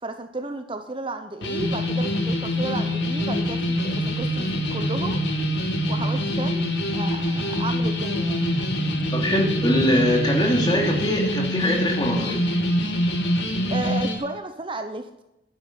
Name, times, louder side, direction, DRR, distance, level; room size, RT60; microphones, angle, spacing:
voice 1, 0.0-5.2 5.9-6.7 6.9-8.6 13.7-15.2, right 2 dB, 30° right, 7 dB, 0.8 m, -33 dB
sound 1, 1.4-14.1, equal, 85° left, 2.6 m, -25 dB
voice 2, 9.1-12.4, equal, 25° left, 0 dB, 3.0 m, -22 dB
11.5 x 10.0 x 6.9 m, 0.90 s
head